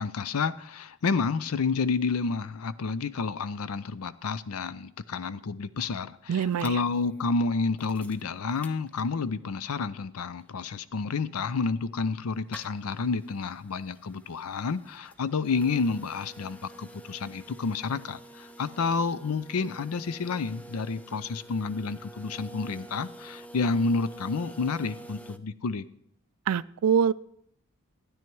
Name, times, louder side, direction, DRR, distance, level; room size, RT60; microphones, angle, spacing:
voice 1, 0.0-25.9, left 4 dB, 75° left, 16 dB, 0.5 m, -30 dB
voice 2, 6.3-6.8 26.5-27.1, right 7 dB, 80° right, 19 dB, 0.3 m, -24 dB
sound 1, 6.4-9.4 9.8-9.9 10.1-25.4, right 2 dB, 5° left, 0.4 m, -49 dB
12.5 x 9.8 x 4.6 m, 0.71 s
head